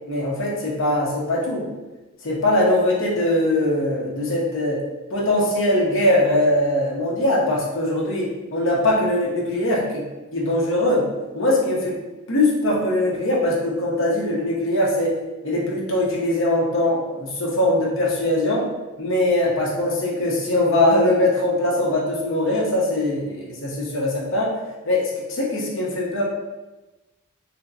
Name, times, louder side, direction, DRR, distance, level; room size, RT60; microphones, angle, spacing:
voice 1, 0.1-1.7 2.2-4.8 5.1-10.0 10.3-11.1 11.3-12.0 12.3-15.1 15.4-18.7 19.0-24.5 24.8-26.2, left 1 dB, 60° left, -4 dB, 0.8 m, -21 dB
3.3 x 2.9 x 2.6 m, 1.1 s
head